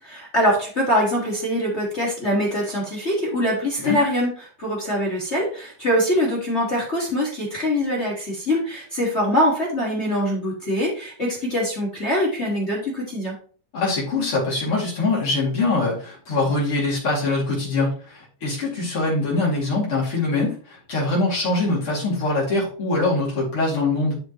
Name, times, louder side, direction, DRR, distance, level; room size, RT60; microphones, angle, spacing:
voice 1, 0.0-4.3 4.6-13.3, equal, 25° left, -2 dB, 1.8 m, -23 dB
voice 2, 13.7-24.2, left 2 dB, 50° left, -5 dB, 3.5 m, -23 dB
11.5 x 5.1 x 3.1 m, 0.43 s
omnidirectional pair, 3.4 m